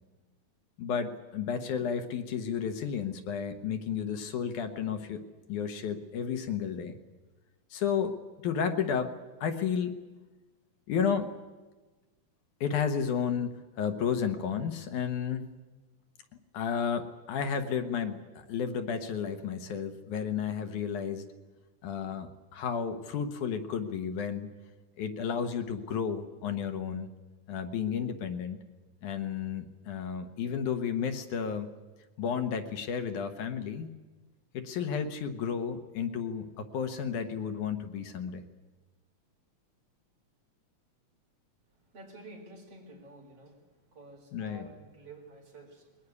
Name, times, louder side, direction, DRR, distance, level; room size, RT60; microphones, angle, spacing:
voice 1, 0.8-7.0 7.7-8.2 8.4-9.1 9.4-10.0 10.9-11.3 12.6-15.5 16.5-21.2 21.8-24.5 25.0-27.1 27.5-28.6 29.0-31.7 32.2-33.9 34.5-38.4 44.3-44.7, left 7 dB, 80° left, 8 dB, 2.7 m, -32 dB
voice 2, 41.9-43.6 43.9-46.1, right 2 dB, 50° right, 1 dB, 5.0 m, -50 dB
21.5 x 19.0 x 9.7 m, 1.3 s
omnidirectional pair, 3.5 m